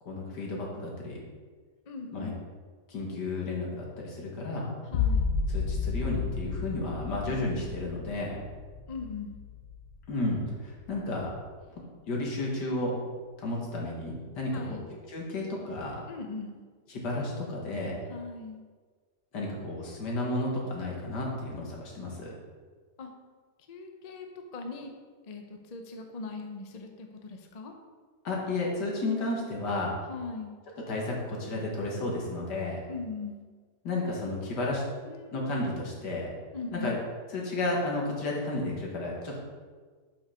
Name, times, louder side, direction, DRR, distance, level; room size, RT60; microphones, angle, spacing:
voice 1, 0.1-1.2 2.1-2.3 2.9-4.7 5.5-8.4 10.1-11.3 11.7-13.0 13.4-14.8 15.1-16.0 16.9-18.0 19.3-22.3 28.2-30.0 30.9-32.8 33.8-34.8 35.3-36.3 36.7-36.9 37.3-39.4, left 2 dB, 85° left, -2 dB, 2.1 m, -32 dB
voice 2, 1.9-2.4 4.9-5.3 8.9-9.4 14.5-14.9 16.1-16.7 18.1-18.6 23.0-23.1 23.7-24.3 24.5-24.9 25.2-27.7 30.1-30.5 32.9-33.5 35.0-35.5 36.5-37.0, left 4 dB, 40° left, 3 dB, 0.5 m, -40 dB
sound 1, 4.9-10.4 10.8-11.4, left 5 dB, 70° left, 1.1 m, -32 dB
5.6 x 5.2 x 5.6 m, 1.5 s
omnidirectional pair, 1.8 m